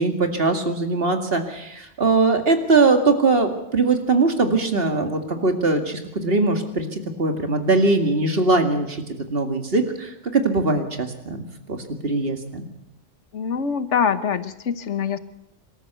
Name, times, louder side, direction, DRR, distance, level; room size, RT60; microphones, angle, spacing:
voice 1, 0.0-9.0 9.3-12.7, right 3 dB, 50° right, 6 dB, 2.4 m, -21 dB
voice 2, 13.3-15.2, left 7 dB, 75° left, 13 dB, 1.4 m, -24 dB
25.5 x 13.5 x 8.2 m, 0.85 s
omnidirectional pair, 1.2 m